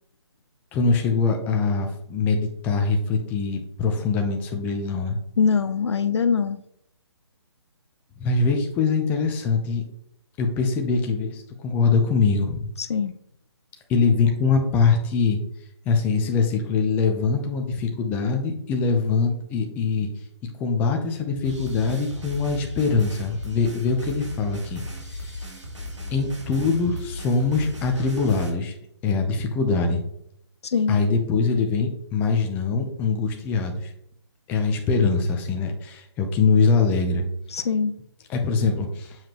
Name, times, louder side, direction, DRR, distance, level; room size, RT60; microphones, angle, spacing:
voice 1, 0.7-5.2 8.2-9.8 10.4-12.7 13.9-15.4 15.9-20.1 20.6-24.8 25.1-25.5 26.1-28.7 29.0-30.0 30.9-33.9 34.5-37.2 38.3-39.2, left 4 dB, 10° left, 3 dB, 0.6 m, -23 dB
voice 2, 5.4-6.6 12.8-13.1 30.6-31.0 37.5-37.9, left 6 dB, 70° left, 13 dB, 0.5 m, -22 dB
sound 1, 21.4-28.5, left 1 dB, 90° right, 1.9 m, -36 dB
7.3 x 4.8 x 3.0 m, 0.73 s
hypercardioid pair, 155°, 15 cm